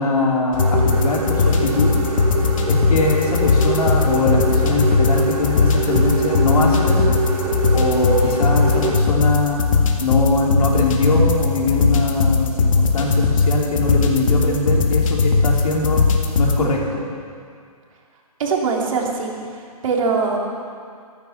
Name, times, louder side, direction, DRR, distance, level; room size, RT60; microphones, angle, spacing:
voice 1, 0.0-2.0 2.7-7.2 7.7-9.7 10.0-16.1 16.4-17.0, left 2 dB, 70° left, -1 dB, 3.7 m, -22 dB
sound 1, 0.5-16.6, left 4 dB, 55° left, 2.1 m, -19 dB
sound 2, 0.5-9.0, right 4 dB, 80° right, 3.8 m, -25 dB
voice 2, 18.4-19.5 19.8-20.5, right 4 dB, 60° right, -1 dB, 3.3 m, -22 dB
14.5 x 14.0 x 5.9 m, 2.2 s
hypercardioid pair, 140°, 19 cm